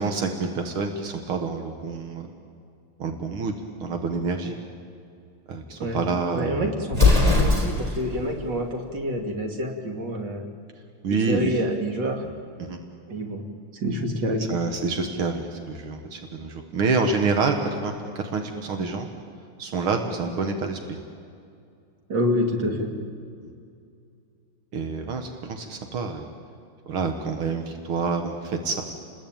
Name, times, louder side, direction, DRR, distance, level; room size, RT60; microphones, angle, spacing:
voice 1, 0.0-2.3 3.0-3.6 3.8-4.6 5.5-6.8 11.0-11.6 12.6-12.8 14.5-17.9 18.2-19.1 19.6-21.0 23.4-23.5 24.7-26.2 26.9-28.8, right 4 dB, 85° right, 4 dB, 2.4 m, -27 dB
voice 2, 6.3-10.4 11.2-12.2 13.1-13.4 13.8-14.5 22.1-22.9, equal, 55° right, 3 dB, 3.2 m, -27 dB
Explosion, 6.9-8.1, left 3 dB, 15° right, 4.1 m, -19 dB
30.0 x 20.5 x 9.0 m, 2.5 s
omnidirectional pair, 2.3 m